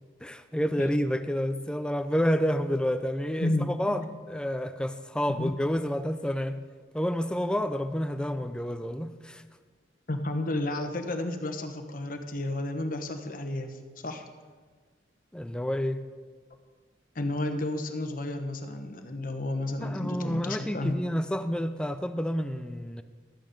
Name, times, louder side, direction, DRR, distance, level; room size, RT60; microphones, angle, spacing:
voice 1, 0.2-6.6 6.9-9.4 15.3-16.0 19.8-23.0, equal, 5° left, 10 dB, 0.4 m, -29 dB
voice 2, 3.4-4.0 5.3-5.5 10.1-14.2 17.1-21.0, left 1 dB, 50° left, 6 dB, 1.0 m, -32 dB
12.5 x 9.0 x 5.1 m, 1.5 s
head